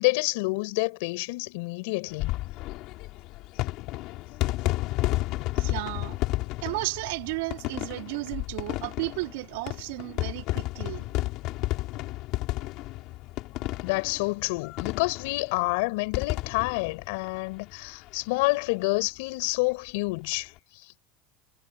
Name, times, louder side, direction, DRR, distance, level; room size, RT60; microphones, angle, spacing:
voice 1, 0.0-2.3 13.8-20.5, left 26 dB, 70° left, 7.3 m, -28 dB
sound 1, 2.1-18.1 18.4-18.5 18.7-18.8 20.1-20.3, left 18 dB, 50° left, 3.3 m, -32 dB
voice 2, 5.6-6.2 6.6-11.1, right 24 dB, 70° right, 4.2 m, -33 dB
supercardioid pair, 160°, 0 cm